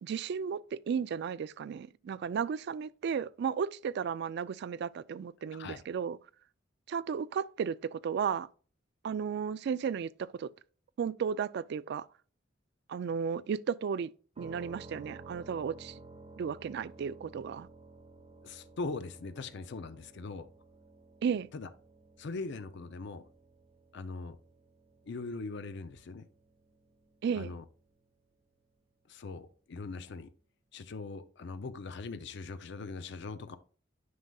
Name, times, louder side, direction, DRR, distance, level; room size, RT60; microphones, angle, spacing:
voice 1, 0.0-6.2 6.9-8.5 9.0-10.5 11.0-12.1 12.9-14.1 14.4-16.0 16.4-17.7 21.2-21.5 27.2-27.6, right 7 dB, 60° right, 0.3 m, -34 dB
sound 1, 14.4-28.0, right 3 dB, 30° right, 1.6 m, -54 dB
voice 2, 18.4-20.5 21.5-21.7 22.2-23.2 23.9-24.4 25.0-26.2 27.3-27.6 29.1-30.3 30.7-33.6, left 3 dB, 65° left, 0.5 m, -41 dB
9.4 x 5.4 x 2.3 m
head